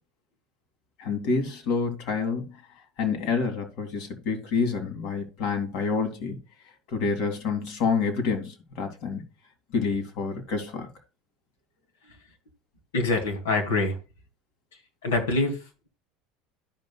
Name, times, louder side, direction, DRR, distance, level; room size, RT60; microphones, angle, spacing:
voice 1, 1.0-2.5 3.0-6.4 6.9-9.2 9.7-10.9, left 5 dB, 65° left, 2.2 m, -28 dB
voice 2, 12.9-14.0 15.0-15.9, left 2 dB, 90° left, 2.4 m, -25 dB
13.5 x 5.5 x 2.3 m
hypercardioid pair, 85°, 0 cm